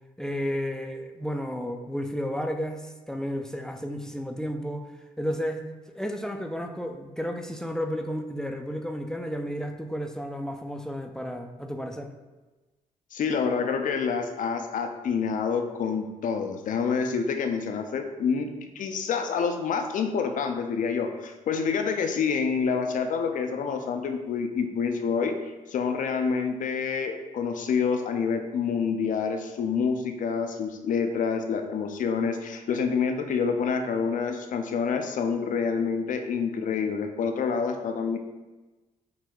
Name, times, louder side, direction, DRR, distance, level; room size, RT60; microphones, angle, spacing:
voice 1, 0.2-4.9 5.2-12.1, equal, 5° left, 4 dB, 0.4 m, -32 dB
voice 2, 13.1-25.4 25.7-38.2, left 5 dB, 65° left, 6 dB, 0.5 m, -27 dB
4.5 x 2.2 x 3.8 m, 1.2 s
supercardioid pair, 65°, 15 cm